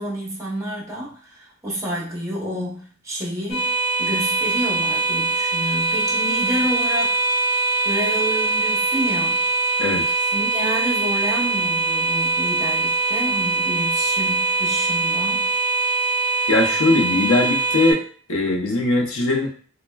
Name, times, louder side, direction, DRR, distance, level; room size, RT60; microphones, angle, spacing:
voice 1, 0.0-3.7 4.0-7.1 7.8-9.4 10.3-15.5, equal, 15° right, -4 dB, 0.7 m, -29 dB
sound 1, 3.5-17.9, right 3 dB, 50° left, 1.0 m, -22 dB
voice 2, 16.5-18.0 18.3-19.5, left 2 dB, 70° left, 1 dB, 0.6 m, -20 dB
3.2 x 2.1 x 2.2 m, 0.42 s
head